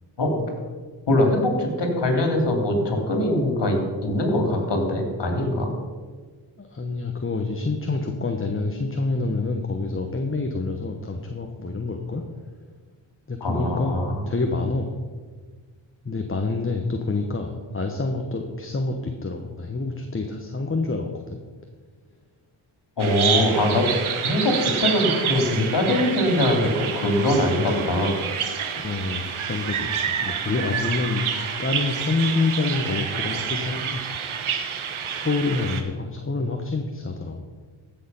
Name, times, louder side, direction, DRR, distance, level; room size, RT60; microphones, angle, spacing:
voice 1, 1.1-5.7 13.4-14.2 23.0-23.9 24.2-28.2, left 1 dB, 60° left, 3 dB, 3.0 m, -22 dB
voice 2, 6.6-12.2 13.3-14.9 16.0-21.4 28.8-31.2 31.6-34.0 35.1-37.4, left 3 dB, 25° left, 4 dB, 1.2 m, -27 dB
Bird vocalization bird call bird song, 23.0-35.8, right 7 dB, 90° right, 1.2 m, -28 dB
15.0 x 6.8 x 5.6 m, 1.5 s
cardioid pair, 70°, 47 cm